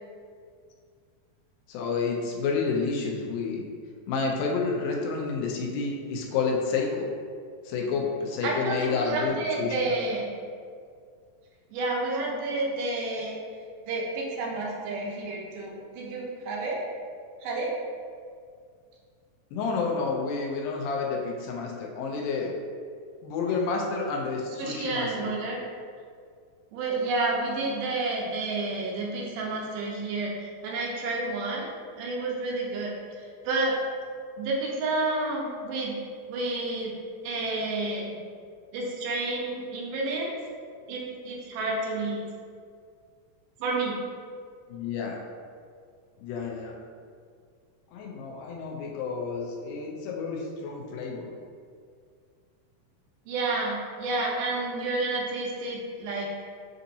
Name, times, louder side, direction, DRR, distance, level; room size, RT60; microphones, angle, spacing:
voice 1, 1.7-3.7 4.1-7.1 7.7-9.8 19.5-22.5 23.2-25.3 44.7-45.2 46.2-46.8 47.9-51.3, left 4 dB, 85° left, 0 dB, 2.4 m, -30 dB
voice 2, 8.4-10.3 11.7-13.4 13.9-16.8 17.4-17.7 24.6-25.6 26.7-31.7 32.0-33.7 34.4-35.9 36.3-36.9 37.2-38.2 38.7-40.4 40.9-42.2 43.6-44.0 53.3-56.3, right 2 dB, 75° right, -2 dB, 2.2 m, -30 dB
7.5 x 2.7 x 2.7 m, 2.1 s
omnidirectional pair, 4.0 m